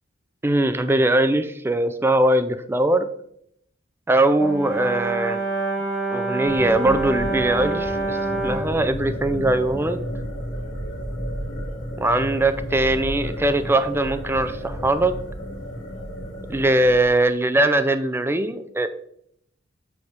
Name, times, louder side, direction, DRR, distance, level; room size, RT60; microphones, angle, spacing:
voice 1, 0.4-3.0 4.1-5.4 6.1-8.2 8.4-10.0 12.0-15.1 16.5-18.9, right 1 dB, 10° right, 10 dB, 0.4 m, -21 dB
Brass instrument, 4.4-8.8, right 2 dB, 50° left, 1.3 m, -27 dB
sound 1, 6.5-17.1, equal, 75° left, 2.2 m, -32 dB
7.9 x 3.5 x 4.7 m, 0.69 s
head